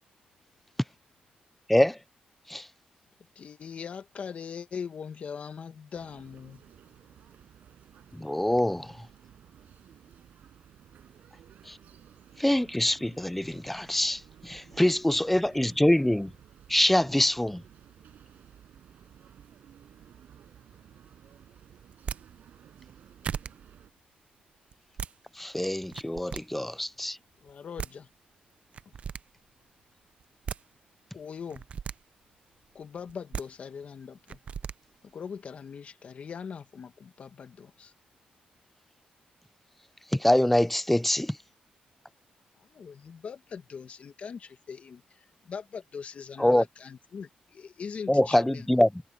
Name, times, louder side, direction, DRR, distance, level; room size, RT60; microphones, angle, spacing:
voice 1, 0.3-0.8 3.0-3.5 6.5-7.4 9.8-9.9 12.0-12.5 17.8-18.4 20.6-21.3 23.1-24.4 26.4-27.3 29.3-29.9 32.3-32.8 38.5-38.6, left 10 dB, 90° left, 6.6 m, -75 dB
voice 2, 3.4-6.6 27.4-28.1 28.9-29.0 31.1-31.7 32.7-34.4 35.1-37.9 42.6-48.7, left 6 dB, 55° left, 1.7 m, -41 dB
sound 1, 5.9-23.9, right 9 dB, 80° right, 6.4 m, -55 dB
voice 3, 8.1-9.1 11.7-11.8 12.4-16.3 16.7-17.6 25.4-27.2 40.1-41.4 46.4-46.6 48.1-48.9, left 1 dB, 5° left, 0.4 m, -24 dB
sound 2, 21.9-22.2 22.9-23.0 23.2-23.5 24.7-25.1 25.8-26.4 27.5-27.6 27.8-27.9 28.7-29.2 30.2-30.6 31.5-31.9 33.1-33.4 34.3-34.7, right 7 dB, 50° right, 0.4 m, -36 dB
cardioid pair, 120°, 3 cm